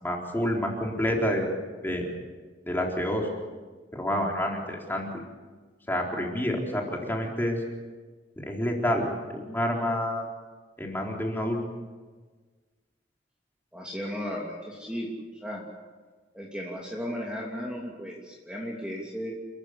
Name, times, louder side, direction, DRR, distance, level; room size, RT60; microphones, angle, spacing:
voice 1, 0.0-1.5 1.8-2.1 2.7-3.3 3.9-5.2 5.9-7.6 8.4-9.1 9.3-10.3 10.8-11.6, equal, 10° left, -1 dB, 4.2 m, -28 dB
voice 2, 13.7-15.1 15.4-15.6 16.3-19.3, equal, 5° right, -3 dB, 3.0 m, -35 dB
29.0 x 15.0 x 8.5 m, 1.4 s
head